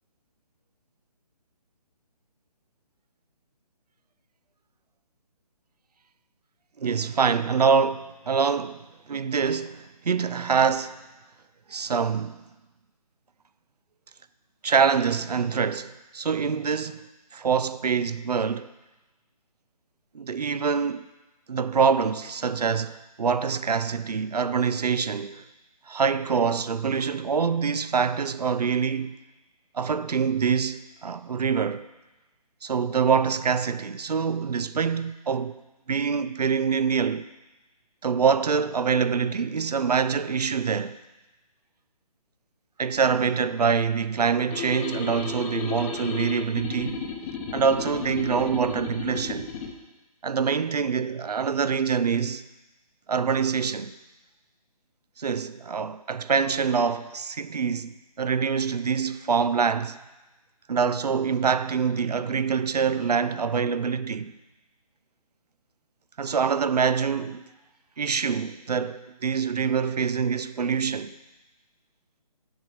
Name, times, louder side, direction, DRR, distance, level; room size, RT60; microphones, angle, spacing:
voice 1, 6.8-11.0 11.7-12.4 14.6-17.0 17.3-18.7 20.1-21.1 21.5-25.4 25.9-29.2 29.7-31.9 32.6-35.6 35.9-37.3 38.0-41.0 42.8-47.1 47.5-49.5 50.2-52.4 53.1-53.9 55.2-60.0 60.7-64.3 66.2-67.4 68.0-71.2, right 6 dB, 85° right, 0.5 m, -25 dB
sound 1, 44.5-49.7, left 6 dB, 20° left, 0.8 m, -34 dB
7.2 x 5.4 x 7.4 m
figure-of-eight pair, 150°, 20 cm